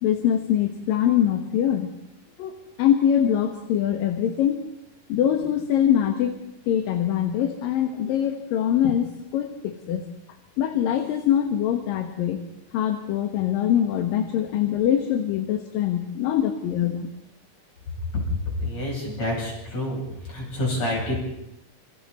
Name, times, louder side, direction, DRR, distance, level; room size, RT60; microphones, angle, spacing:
voice 1, 0.0-1.9 2.4-4.6 5.1-6.4 6.7-10.1 10.6-12.4 12.7-17.1, left 10 dB, 75° left, 5 dB, 3.1 m, -23 dB
voice 2, 18.6-20.0 20.3-21.3, left 1 dB, 50° left, -2 dB, 9.3 m, -27 dB
28.5 x 26.5 x 4.3 m, 0.87 s
omnidirectional pair, 4.1 m